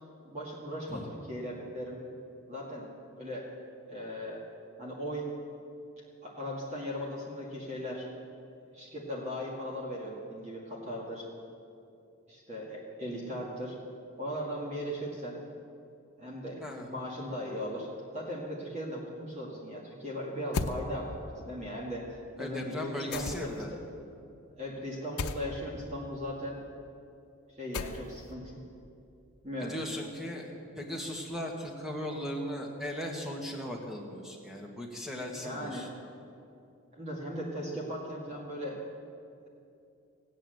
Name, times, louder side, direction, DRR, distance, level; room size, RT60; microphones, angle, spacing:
voice 1, 0.2-1.0 1.3-2.0 2.5-3.5 3.9-4.4 4.8-5.3 6.2-8.1 8.7-11.3 12.3-13.8 14.2-15.4 16.2-17.9 18.1-23.8 24.6-26.6 27.5-28.6 29.4-29.7 35.4-35.9 36.9-38.8, equal, 30° right, -3 dB, 2.0 m, -38 dB
sound 1, 20.5-20.8 23.1-23.6 25.2-25.4 27.7-28.3, left 4 dB, 85° left, 0.7 m, -34 dB
voice 2, 22.4-23.7 29.6-35.9, left 1 dB, ahead, 0 dB, 1.6 m, -38 dB
16.5 x 9.1 x 7.8 m, 2.6 s
head